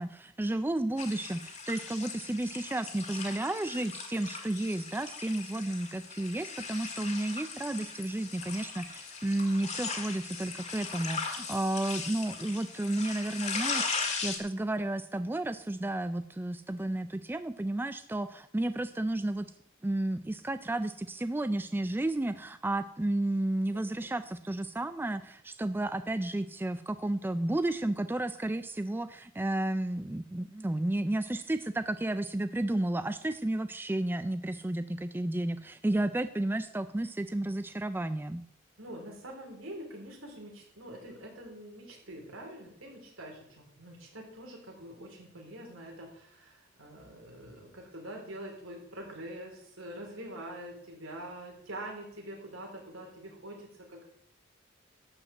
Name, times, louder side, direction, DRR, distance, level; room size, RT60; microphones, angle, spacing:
voice 1, 0.0-19.5 19.8-38.4, right 1 dB, 10° right, 11 dB, 0.3 m, -32 dB
sound 1, 1.0-14.4, left 5 dB, 35° left, 1.7 m, -38 dB
voice 2, 38.8-54.1, right 1 dB, 80° right, 1 dB, 3.7 m, -45 dB
12.0 x 5.1 x 7.6 m, 0.72 s
head